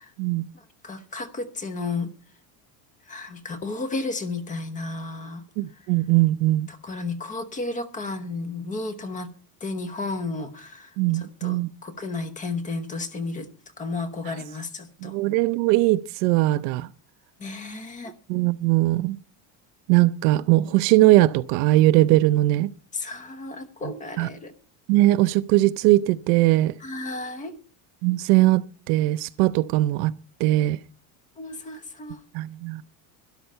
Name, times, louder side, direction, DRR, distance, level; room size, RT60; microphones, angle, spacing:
voice 1, 0.5-2.1 3.1-5.4 6.7-9.3 9.6-13.5 13.8-15.1 17.4-18.1 22.9-24.5 26.8-27.6 31.4-32.2, left 3 dB, 15° left, 1.0 m, -33 dB
voice 2, 5.6-6.7 11.0-11.7 15.0-16.9 18.3-19.2 19.9-22.7 24.2-24.3 24.9-26.7 28.0-30.1 30.4-30.8 32.3-32.8, right 17 dB, 75° right, 0.7 m, -20 dB
12.5 x 11.5 x 5.5 m
cardioid pair, 180°, 45 cm